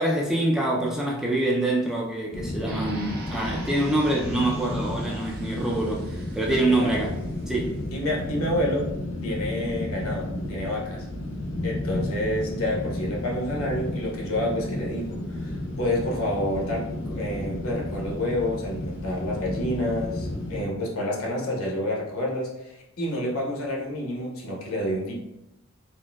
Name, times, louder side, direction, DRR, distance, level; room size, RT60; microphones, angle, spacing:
voice 1, 0.0-7.1 7.5-7.8, right 1 dB, ahead, -3 dB, 0.3 m, -25 dB
sound 1, 2.3-20.6, left 1 dB, 55° left, 0.5 m, -32 dB
sound 2, 2.7-7.7, right 2 dB, 45° right, 0.6 m, -44 dB
voice 2, 7.9-8.9 9.2-11.1 11.6-25.1, left 1 dB, 75° left, -3 dB, 0.9 m, -29 dB
4.3 x 2.1 x 2.2 m, 0.89 s
head